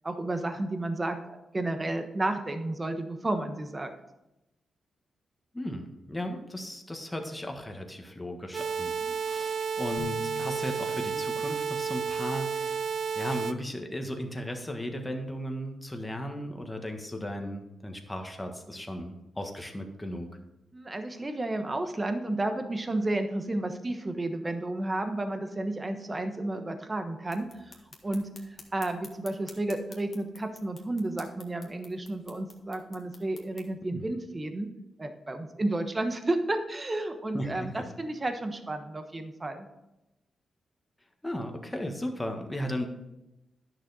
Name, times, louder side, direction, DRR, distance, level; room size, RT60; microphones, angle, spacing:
voice 1, 0.0-3.9 9.0-9.2 20.7-27.8 28.0-28.3 28.7-34.7 35.0-39.7, right 2 dB, 25° right, 7 dB, 1.2 m, -32 dB
voice 2, 5.5-12.8 13.1-20.3 33.9-34.0 37.3-37.8 41.2-42.9, equal, 10° left, 4 dB, 1.5 m, -36 dB
sound 1, 8.5-13.5, right 6 dB, 60° right, 0.5 m, -31 dB
sound 2, 10.0-14.0, left 6 dB, 65° left, 3.0 m, -48 dB
sound 3, 27.3-33.7, left 4 dB, 45° left, 1.6 m, -52 dB
10.5 x 6.6 x 4.2 m, 0.93 s
cardioid pair, 80°, 0 cm